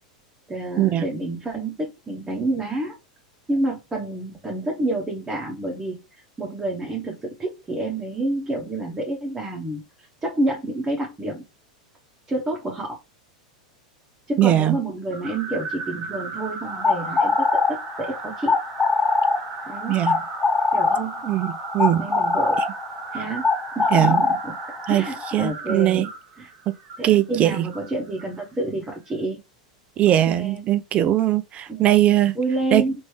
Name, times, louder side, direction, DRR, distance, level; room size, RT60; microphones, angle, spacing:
voice 1, 0.5-3.0 3.5-6.0 6.4-11.4 12.3-13.0 14.3-18.6 19.7-20.0 20.7-21.2 22.0-22.6 23.1-23.5 23.7-24.5 24.9-26.1 26.4-26.5 27.0-29.4 30.1-30.7 31.7-31.8 32.3-32.9, right 2 dB, 15° right, 1.0 m, -28 dB
voice 2, 14.4-14.8 19.9-20.2 21.2-22.1 23.9-24.2 24.9-25.1 25.3-26.1 27.0-27.7 30.0-32.4 32.7-32.8, right 13 dB, 35° right, 0.4 m, -20 dB
sound 1, 15.1-28.5, right 5 dB, 50° right, 0.9 m, -36 dB
sound 2, 16.6-25.5, left 4 dB, 20° left, 0.6 m, -23 dB
3.1 x 2.6 x 3.1 m
hypercardioid pair, 95°, 4 cm